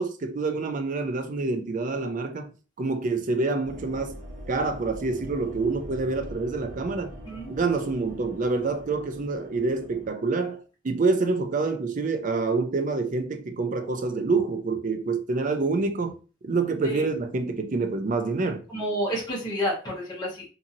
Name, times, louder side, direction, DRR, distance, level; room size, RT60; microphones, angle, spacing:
voice 1, 0.0-4.2 4.5-7.1 7.5-16.2 16.4-18.6, right 3 dB, 40° right, 0.4 m, -27 dB
sound 1, 3.6-10.1, equal, 80° right, 0.9 m, -43 dB
voice 2, 18.7-20.4, equal, 20° left, 1.0 m, -30 dB
2.7 x 2.7 x 2.6 m
head